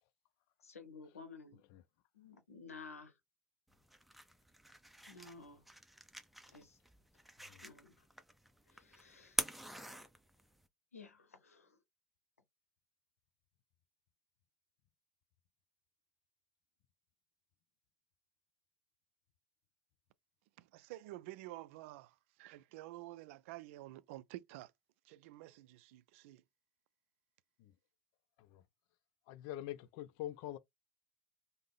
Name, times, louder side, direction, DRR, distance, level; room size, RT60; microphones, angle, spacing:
voice 1, 0.6-1.6 2.1-3.2 5.1-5.6 6.5-6.8 7.6-8.1 8.7-9.5 10.9-11.8, left 4 dB, 90° left, 0.7 m, -54 dB
sound 1, 3.7-10.7, equal, ahead, 0.6 m, -45 dB
voice 2, 20.6-24.7 25.0-26.4, right 17 dB, 65° right, 0.4 m, -50 dB
voice 3, 29.3-30.6, left 13 dB, 60° left, 0.4 m, -45 dB
3.5 x 2.0 x 3.3 m
hypercardioid pair, 75°, 8 cm